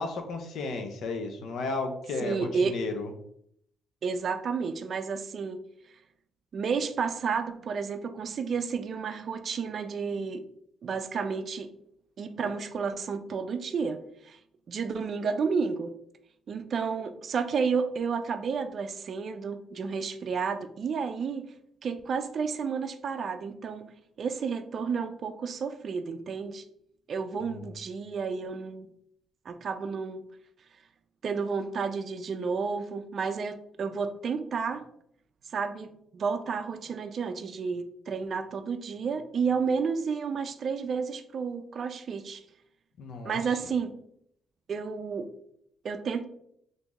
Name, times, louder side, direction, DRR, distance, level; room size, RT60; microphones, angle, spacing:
voice 1, 0.0-3.1 27.4-27.7 43.0-43.4, left 3 dB, 75° left, 6 dB, 0.6 m, -34 dB
voice 2, 2.2-2.8 4.0-5.6 6.5-10.4 10.8-11.7 12.2-14.4 14.7-15.9 16.5-21.5 21.8-23.9 24.2-26.6 27.1-28.9 29.5-30.2 31.2-34.8 35.5-42.4 43.2-43.9 44.7-45.3 45.8-46.2, right 5 dB, 55° right, 9 dB, 0.4 m, -31 dB
3.4 x 2.6 x 3.0 m, 0.71 s
cardioid pair, 90°, 0 cm